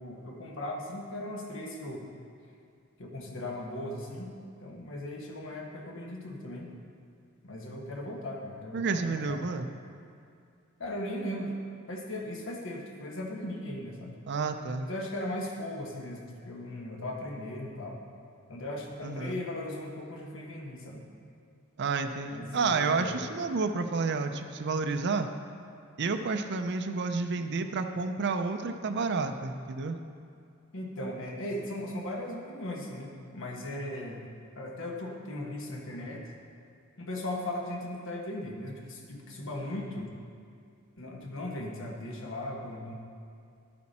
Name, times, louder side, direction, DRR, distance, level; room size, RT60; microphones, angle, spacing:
voice 1, 0.0-2.1 3.0-4.3 4.6-6.7 7.4-9.4 10.8-11.5 11.9-14.2 14.8-18.0 18.5-21.0 22.2-23.2 30.7-34.2 34.5-36.3 37.0-40.1 41.0-42.9, left 1 dB, 65° left, 0 dB, 1.4 m, -38 dB
voice 2, 8.7-9.7 14.3-14.9 19.0-19.4 21.8-25.3 26.0-30.0, right 4 dB, 55° right, 7 dB, 0.5 m, -30 dB
11.5 x 8.6 x 4.2 m, 2.4 s
head